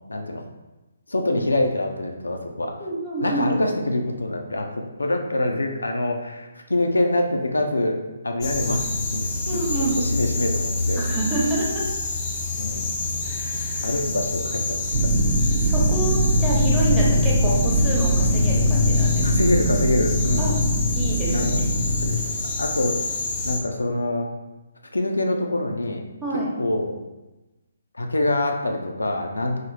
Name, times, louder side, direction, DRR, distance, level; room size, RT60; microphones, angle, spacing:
voice 1, 0.1-0.4 1.1-2.7 3.2-8.0 8.2-9.6 9.9-11.0 12.5-12.9 13.8-15.0 19.2-20.5 21.3-23.0 23.4-24.3 24.9-26.0 26.6-26.9 27.9-29.6, left 1 dB, 85° left, 3 dB, 0.5 m, -25 dB
voice 2, 2.8-3.5 9.5-10.0 11.0-11.9 13.2-14.0 15.6-19.3 20.4-20.6 20.9-21.7 26.2-26.5, right 2 dB, 5° right, -8 dB, 0.9 m, -28 dB
sound 1, 8.4-23.6, left 2 dB, 25° left, 0.5 m, -28 dB
sound 2, 14.9-22.1, equal, 75° right, 1.0 m, -21 dB
3.9 x 2.1 x 3.1 m, 1.1 s
figure-of-eight pair, 145°, 0 cm